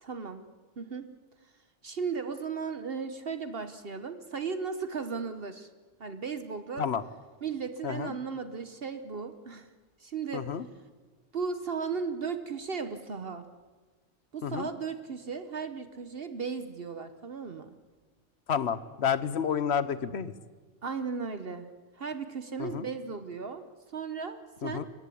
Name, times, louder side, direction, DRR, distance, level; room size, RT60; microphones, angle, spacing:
voice 1, 0.0-0.4 0.8-1.1 1.8-5.7 6.0-6.9 7.4-9.7 10.0-10.5 11.3-13.5 14.3-17.7 20.8-21.7 22.0-24.9, right 5 dB, 55° right, 9 dB, 1.1 m, -36 dB
voice 2, 7.8-8.1 10.3-10.6 14.4-14.7 18.5-20.3 22.6-22.9 24.6-24.9, left 7 dB, 60° left, 14 dB, 1.1 m, -30 dB
27.0 x 15.5 x 8.4 m, 1.4 s
omnidirectional pair, 1.3 m